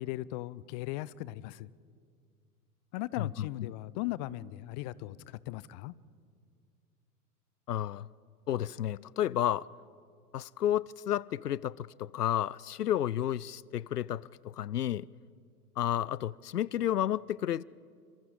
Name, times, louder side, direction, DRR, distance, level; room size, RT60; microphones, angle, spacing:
voice 1, 0.0-1.7 2.9-5.9, left 16 dB, 30° left, 0.4 m, -38 dB
voice 2, 3.2-3.5 7.7-8.1 8.5-9.7 10.3-15.1 15.8-17.6, left 11 dB, 80° left, 0.5 m, -31 dB
28.5 x 26.0 x 3.8 m
figure-of-eight pair, 95°, 47 cm